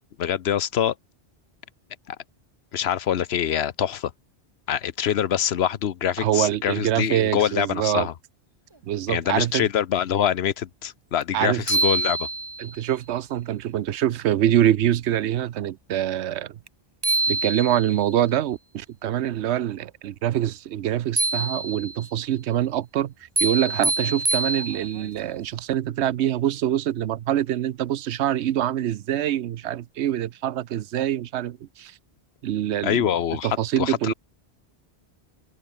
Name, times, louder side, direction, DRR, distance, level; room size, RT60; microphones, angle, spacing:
voice 1, 0.2-0.9 2.1-2.2 2.7-4.1 4.7-8.1 9.1-12.3 32.8-34.1, left 9 dB, 70° left, 1.0 m, -25 dB
voice 2, 6.2-8.1 8.8-9.7 11.3-11.8 12.6-16.6 17.3-23.1 23.4-32.0 32.4-33.1 33.4-34.1, right 11 dB, 85° right, 0.9 m, -25 dB
sound 1, 11.2-11.3 11.7-12.8 16.7-16.8 17.0-18.1 21.2-22.1 23.4-25.1, right 3 dB, 25° right, 1.2 m, -25 dB
open air
omnidirectional pair, 1.1 m